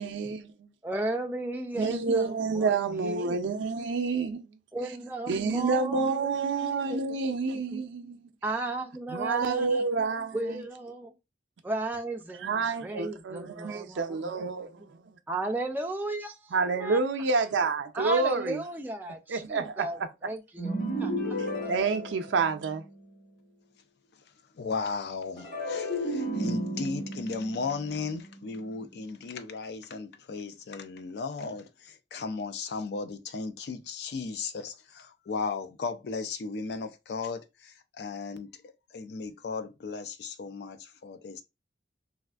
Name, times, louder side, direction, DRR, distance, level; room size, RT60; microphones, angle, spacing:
voice 1, 0.0-0.7 1.8-4.4 5.3-8.3 9.1-10.6 12.4-14.7 16.5-18.6 19.3-20.1 21.7-22.8, right 4 dB, 90° right, 0.4 m, -28 dB
voice 2, 0.8-3.4 4.7-6.4 6.7-7.8 8.4-9.8 10.3-11.1 11.6-14.5 14.8-14.9 15.3-17.0 18.0-21.1, right 2 dB, 10° right, 0.3 m, -35 dB
sound 1, 20.6-23.0 25.4-28.7, equal, 40° left, 1.9 m, -33 dB
voice 3, 24.1-41.4, left 4 dB, 65° left, 0.4 m, -36 dB
3.4 x 2.4 x 2.3 m
head